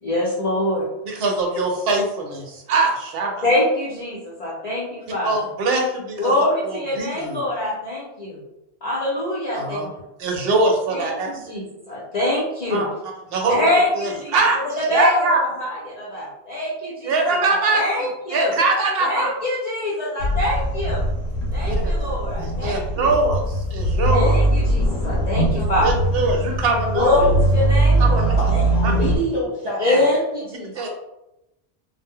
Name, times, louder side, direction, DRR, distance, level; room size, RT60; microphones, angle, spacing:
voice 1, 0.0-0.9 3.4-5.3 6.2-8.4 8.8-9.8 10.9-12.8 13.5-14.3 14.6-17.2 17.5-18.5 19.0-21.0 21.5-23.1 24.1-25.9 26.9-27.3 27.5-28.6 28.8-29.0 29.8-30.7, left 1 dB, 45° left, -7 dB, 0.6 m, -24 dB
voice 2, 1.1-3.4 5.2-6.3 6.6-7.4 9.5-9.9 10.2-11.4 12.7-12.9 13.3-13.6 13.9-14.6 14.9-15.4 17.0-17.8 18.3-19.3 21.6-22.0 22.4-24.4 25.8-27.1 28.0-28.3 28.8-28.9 30.7-30.9, right 3 dB, 65° right, 2 dB, 0.8 m, -22 dB
sound 1, 20.2-29.2, right 1 dB, 80° left, 0.9 m, -21 dB
voice 3, 28.4-30.0 30.7-30.9, right 1 dB, 30° right, -8 dB, 0.8 m, -27 dB
2.1 x 2.0 x 3.6 m, 0.90 s
omnidirectional pair, 1.1 m